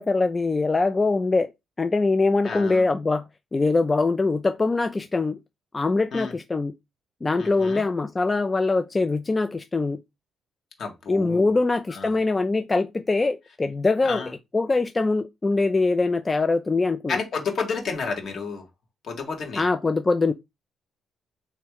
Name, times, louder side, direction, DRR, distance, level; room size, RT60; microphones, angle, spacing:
voice 1, 0.0-1.5 1.8-3.2 3.5-5.4 5.7-6.7 7.2-10.0 11.1-14.2 14.5-17.2 19.6-20.3, left 3 dB, 25° left, 0.3 m, -23 dB
voice 2, 2.4-2.8 6.1-6.3 7.4-7.8 10.8-11.5 11.9-12.2 14.0-14.3 17.1-18.7 19.0-19.6, left 5 dB, 60° left, 1.6 m, -31 dB
3.5 x 3.2 x 4.7 m
cardioid pair, 90°, 0 cm